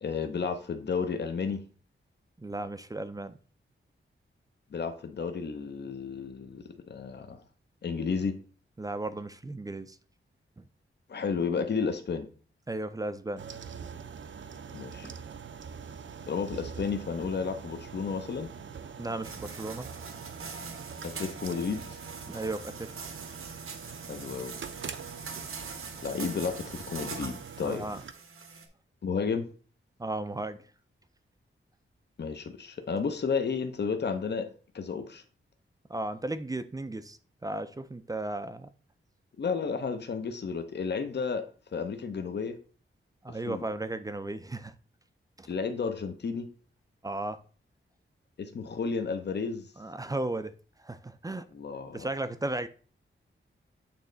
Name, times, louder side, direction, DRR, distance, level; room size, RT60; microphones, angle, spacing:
voice 1, 0.0-1.6 4.7-7.4 7.8-8.4 11.1-12.3 14.7-15.1 16.3-18.5 21.0-22.0 24.1-24.5 26.0-27.9 29.0-29.4 32.2-34.5 34.7-35.2 39.4-41.4 41.7-42.6 43.5-43.6 45.5-46.5 48.4-49.7 51.5-52.1, left 5 dB, 55° left, 0.8 m, -32 dB
voice 2, 2.4-3.3 8.8-10.0 10.6-10.7 12.7-13.4 15.0-15.1 19.0-19.9 22.3-22.9 27.6-28.0 30.0-30.6 35.9-38.7 43.2-44.7 45.4-45.5 47.0-47.4 49.8-50.5 50.8-51.5 51.9-52.7, right 2 dB, 15° right, 0.4 m, -35 dB
sound 1, 13.4-28.1, right 6 dB, 65° right, 0.6 m, -44 dB
sound 2, 19.2-28.7, right 5 dB, 90° right, 1.0 m, -43 dB
8.7 x 3.2 x 3.9 m
wide cardioid pair, 145°, 21 cm